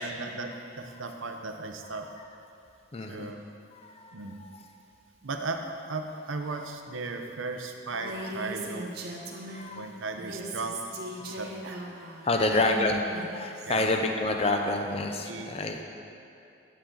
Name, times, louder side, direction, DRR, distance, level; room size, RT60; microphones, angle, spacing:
voice 1, 0.0-2.1 3.1-3.4 4.1-4.4 5.2-9.0 9.7-11.8 12.3-12.6 13.6-13.9 15.2-15.5, right 3 dB, 85° right, 5 dB, 0.8 m, -36 dB
voice 2, 2.9-3.3 3.7-4.1 4.4-4.6 8.0-8.1 9.5-9.9 11.2-11.5 12.2-15.8, left 2 dB, 30° left, 4 dB, 0.5 m, -28 dB
Female speech woman speaking, 7.9-9.8 10.1-13.9, right 1 dB, 55° right, 1.1 m, -39 dB
10.5 x 8.5 x 3.9 m, 2.7 s
head